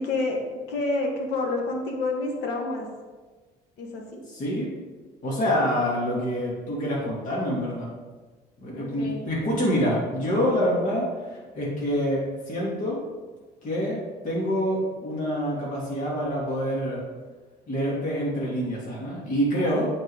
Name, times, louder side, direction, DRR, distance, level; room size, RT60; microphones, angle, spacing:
voice 1, 0.0-2.9 3.8-4.2 8.7-9.3, left 2 dB, 80° left, 1 dB, 1.7 m, -29 dB
voice 2, 4.3-4.7 5.2-7.9 8.6-13.0 13.6-17.0 17.7-19.9, equal, 50° left, -5 dB, 2.8 m, -26 dB
8.9 x 4.6 x 5.0 m, 1.3 s
cardioid pair, 110°, 17 cm